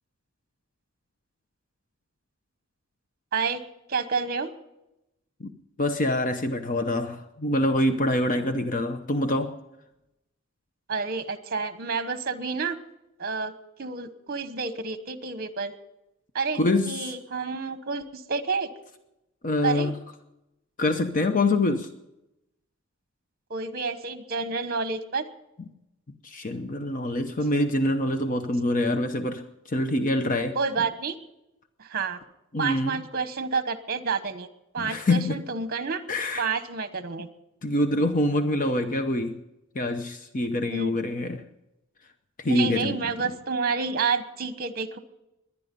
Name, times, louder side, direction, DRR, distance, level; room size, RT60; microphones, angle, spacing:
voice 1, 3.9-4.5 10.9-12.8 13.2-13.5 13.8-15.7 16.3-16.6 16.9-18.7 19.6-19.9 23.5-25.2 30.5-31.2 31.8-32.2 32.6-34.5 34.7-36.0 36.4-37.3 40.7-41.0 42.4-45.0, right 4 dB, 45° right, 11 dB, 1.1 m, -29 dB
voice 2, 5.8-9.5 16.6-17.1 19.4-19.9 20.8-21.9 26.2-30.6 32.5-33.0 34.8-35.4 36.1-36.5 37.6-39.4 39.7-41.4 42.4-43.0, left 1 dB, 40° left, 8 dB, 0.8 m, -25 dB
22.0 x 9.7 x 5.3 m, 0.91 s
head